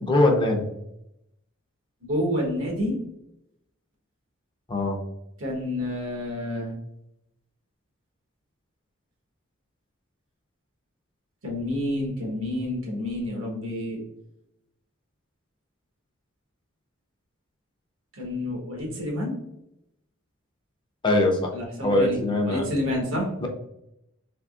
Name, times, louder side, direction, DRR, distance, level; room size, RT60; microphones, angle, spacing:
voice 1, 0.0-0.6 4.7-5.0 21.0-21.5 21.8-22.7 23.4-23.5, left 2 dB, 25° left, 2 dB, 0.5 m, -22 dB
voice 2, 2.0-3.0 5.4-6.7 11.4-14.0 18.2-19.4 21.5-22.2 22.4-23.3, left 1 dB, 80° right, -1 dB, 1.2 m, -29 dB
3.5 x 3.2 x 2.4 m, 0.81 s
head